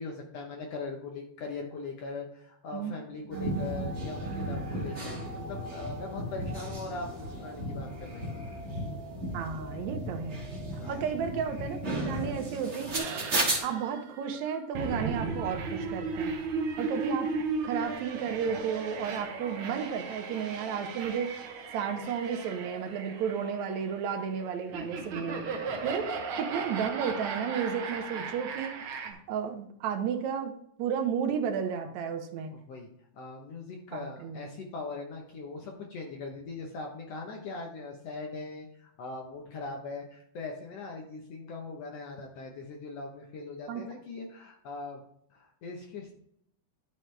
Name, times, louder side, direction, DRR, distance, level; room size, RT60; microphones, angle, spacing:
voice 1, 0.0-8.3 10.7-11.1 25.7-25.9 32.5-45.0 45.3-46.1, left 3 dB, 65° left, 1 dB, 1.9 m, -41 dB
sound 1, 3.3-13.6, right 1 dB, 30° right, 1.7 m, -35 dB
voice 2, 3.3-3.9 4.2-4.5 9.3-10.4 10.9-16.4 16.8-17.3 17.6-21.4 21.7-25.5 25.8-26.1 26.4-32.5 33.9-34.4 43.7-43.8, right 7 dB, 75° right, 5 dB, 2.2 m, -33 dB
sound 2, 13.0-29.1, right 4 dB, 60° right, 1.6 m, -36 dB
11.5 x 5.1 x 3.3 m, 0.71 s
omnidirectional pair, 3.3 m